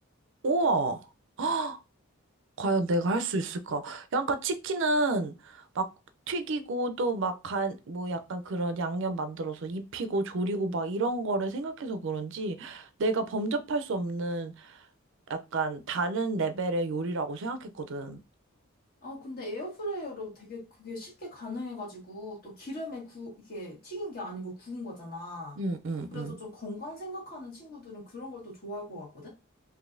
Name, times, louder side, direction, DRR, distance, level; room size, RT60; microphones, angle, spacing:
voice 1, 0.4-1.1 1.4-1.8 2.6-5.9 6.3-14.8 15.3-18.2 25.6-26.4, right 2 dB, 60° right, 0.5 m, -30 dB
voice 2, 19.0-25.6 26.1-29.3, left 1 dB, 45° left, 1.5 m, -39 dB
3.9 x 2.6 x 2.5 m
head